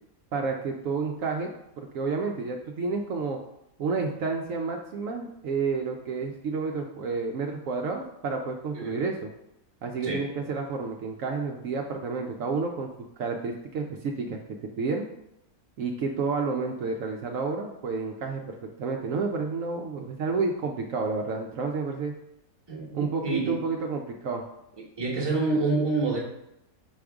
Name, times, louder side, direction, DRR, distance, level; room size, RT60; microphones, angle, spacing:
voice 1, 0.3-3.4 3.8-9.3 9.8-14.4 14.8-15.1 15.8-22.1 22.9-24.4, right 4 dB, 70° right, 2 dB, 1.0 m, -30 dB
voice 2, 22.7-23.6 25.0-26.2, right 3 dB, 20° right, -2 dB, 1.1 m, -27 dB
6.0 x 5.0 x 3.5 m, 0.83 s
omnidirectional pair, 1.5 m